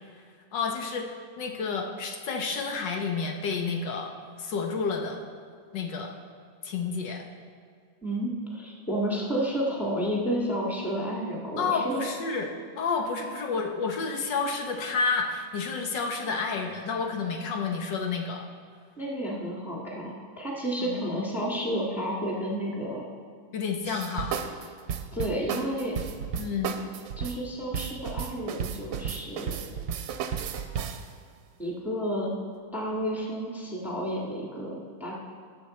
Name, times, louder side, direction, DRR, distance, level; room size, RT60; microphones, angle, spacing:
voice 1, 0.5-1.1 1.4-4.1 4.4-5.2 5.7-6.1 6.6-7.2 11.6-12.5 12.8-18.4 20.8-21.3 23.5-24.3 26.4-26.8, left 4 dB, 70° left, 2 dB, 1.6 m, -30 dB
voice 2, 8.0-12.1 19.0-23.0 25.1-26.0 27.2-29.6 31.6-32.3 32.7-35.2, equal, ahead, -3 dB, 1.4 m, -31 dB
sound 1, 23.8-31.1, right 7 dB, 80° right, 1.4 m, -33 dB
17.5 x 7.1 x 4.2 m, 2.1 s
omnidirectional pair, 2.0 m